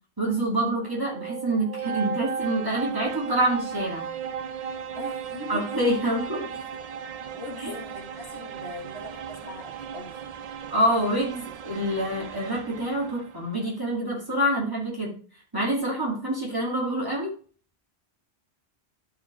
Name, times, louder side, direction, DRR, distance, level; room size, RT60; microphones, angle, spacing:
voice 1, 0.2-4.1 5.5-6.4 7.6-7.7 10.7-15.2 15.5-17.3, right 1 dB, 20° right, 2.1 m, -26 dB
sound 1, 0.7-13.5, right 7 dB, 60° right, 0.4 m, -36 dB
voice 2, 4.9-5.7 6.3-6.5 7.3-10.2, left 2 dB, 65° left, 1.5 m, -41 dB
11.5 x 4.3 x 3.6 m
omnidirectional pair, 1.1 m